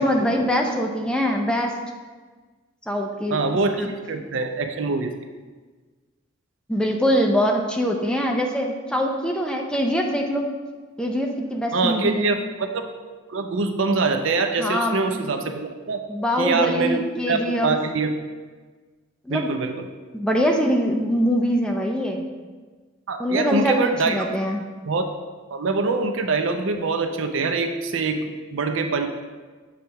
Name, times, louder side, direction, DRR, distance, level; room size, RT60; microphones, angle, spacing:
voice 1, 0.0-1.7 2.9-3.4 3.8-3.9 6.7-10.5 11.0-12.3 14.6-15.2 16.1-17.8 19.3-19.5 20.1-22.2 23.2-24.6, equal, 5° left, 1 dB, 0.6 m, -23 dB
voice 2, 3.3-5.1 11.7-12.9 13.3-16.0 16.4-18.1 19.3-19.9 23.1-24.4 24.9-25.1 25.5-29.1, right 3 dB, 65° right, 6 dB, 0.6 m, -24 dB
7.2 x 3.3 x 5.7 m, 1.4 s
head